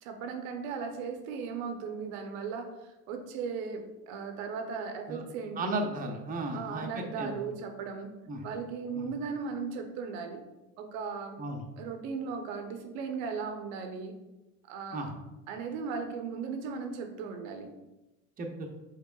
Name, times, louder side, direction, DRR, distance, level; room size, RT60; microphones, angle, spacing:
voice 1, 0.0-5.9 6.5-8.1 8.4-10.4 10.8-11.4 11.8-14.2 14.7-15.1 15.5-17.7, right 5 dB, 90° right, 5 dB, 0.7 m, -37 dB
voice 2, 5.6-7.3 8.3-8.4 8.9-9.0 11.4-11.6 14.9-15.1 18.4-18.7, right 2 dB, 20° right, 2 dB, 0.6 m, -35 dB
5.7 x 4.1 x 2.3 m, 1.0 s
supercardioid pair, 115°, 38 cm